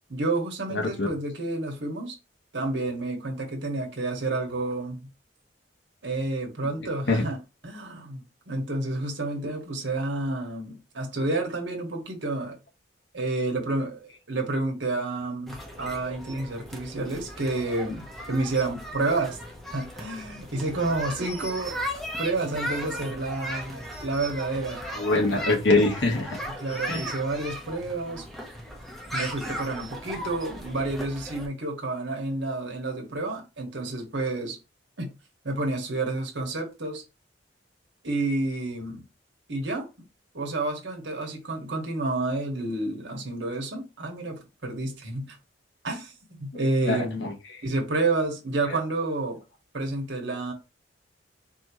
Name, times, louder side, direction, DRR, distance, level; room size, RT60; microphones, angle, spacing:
voice 1, 0.1-2.2 2.5-5.1 6.0-7.4 7.6-12.6 13.1-19.4 19.7-21.8 22.2-24.8 26.6-28.2 29.1-34.6 35.0-35.1 35.4-37.0 38.0-39.0 39.5-39.9 40.3-45.4 45.8-46.1 46.4-47.2 47.6-49.4 49.7-50.5, right 2 dB, 85° right, 1.4 m, -30 dB
voice 2, 0.7-1.1 7.1-7.2 25.0-26.4 26.9-27.0 46.5-47.3, left 2 dB, 85° left, 1.2 m, -24 dB
sound 1, 15.5-31.5, equal, ahead, 0.8 m, -37 dB
4.4 x 2.9 x 3.0 m
head